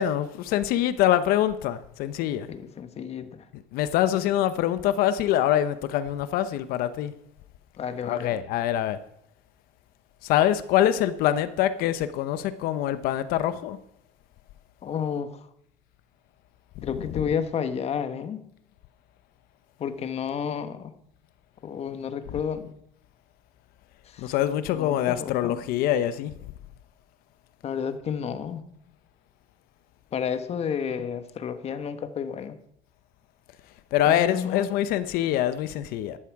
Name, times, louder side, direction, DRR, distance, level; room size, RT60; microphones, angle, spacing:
voice 1, 0.0-2.5 3.5-7.1 8.1-9.0 10.2-13.8 16.8-17.3 24.2-26.3 33.9-36.2, left 11 dB, 75° left, 0.8 m, -25 dB
voice 2, 2.5-3.5 7.8-8.4 14.8-15.5 16.8-18.4 19.8-20.9 21.6-22.7 24.1-24.3 24.7-25.6 27.6-28.6 30.1-32.6 34.1-34.7, left 7 dB, 40° left, 1.2 m, -31 dB
13.5 x 11.0 x 4.7 m
cardioid pair, 120°, 15 cm